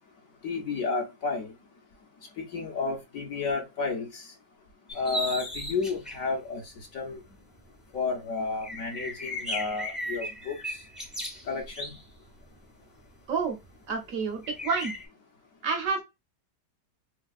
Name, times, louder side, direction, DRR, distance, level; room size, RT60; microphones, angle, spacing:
voice 1, 0.4-1.5 2.4-4.3 4.9-6.6 6.9-7.2 7.9-10.8 11.5-11.9, left 4 dB, 60° left, 1.0 m, -31 dB
sound 1, 4.9-6.3 6.8-6.9 7.3-7.4 7.6-7.7 7.9-8.0 8.5-12.6 13.4-13.7 14.4-15.1, equal, ahead, 0.5 m, -36 dB
voice 2, 13.9-14.9 15.6-16.0, right 5 dB, 65° right, 1.0 m, -29 dB
4.1 x 2.3 x 2.3 m
omnidirectional pair, 1.8 m